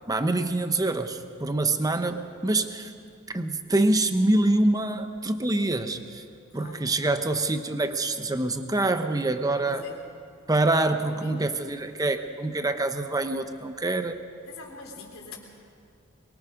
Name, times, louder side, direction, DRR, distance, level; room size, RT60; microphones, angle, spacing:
voice 1, 0.1-2.9 3.3-6.2 6.5-9.8 10.5-14.2, right 2 dB, 15° right, 8 dB, 0.9 m, -25 dB
voice 2, 6.5-6.9 9.5-10.0 11.0-11.5 14.5-15.4, left 3 dB, 80° left, 0 dB, 3.6 m, -44 dB
23.0 x 23.0 x 5.2 m, 2.4 s
head